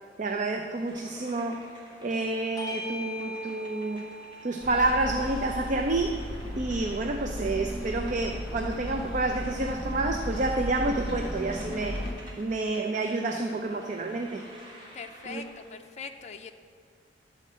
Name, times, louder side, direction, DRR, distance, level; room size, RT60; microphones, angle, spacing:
voice 1, 0.2-1.7 2.0-4.1 4.4-6.2 6.6-12.0 12.4-14.4 15.3-15.4, right 2 dB, 45° right, 4 dB, 0.5 m, -29 dB
sound 1, 0.7-15.8, right 1 dB, 25° right, 1.7 m, -52 dB
Bell / Doorbell, 2.6-7.4, equal, 20° left, 0.8 m, -43 dB
sound 2, 4.6-12.1, equal, 5° right, 1.6 m, -35 dB
voice 2, 14.9-16.5, left 5 dB, 40° left, 5 dB, 0.4 m, -41 dB
11.5 x 4.4 x 7.4 m, 2.2 s
head